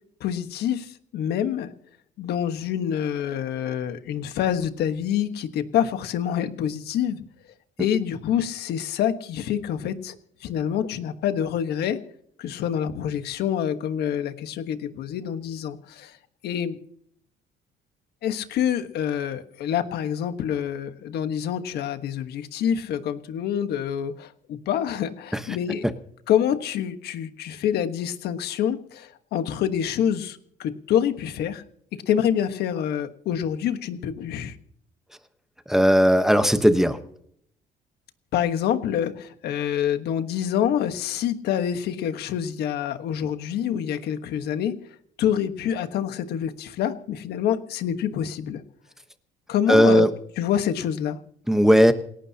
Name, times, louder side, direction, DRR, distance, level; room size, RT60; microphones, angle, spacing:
voice 1, 0.2-1.7 2.2-7.2 7.8-10.1 10.4-12.0 12.4-16.1 16.4-16.8 18.2-25.9 26.3-31.6 31.9-34.6 38.3-44.8 45.2-48.6 49.5-50.0 50.4-51.2, left 9 dB, 75° left, 9 dB, 1.4 m, -26 dB
voice 2, 35.7-37.0 49.7-50.1 51.5-51.9, equal, 5° right, 9 dB, 1.1 m, -17 dB
28.0 x 11.5 x 2.9 m, 0.67 s
cardioid pair, 110°, 17 cm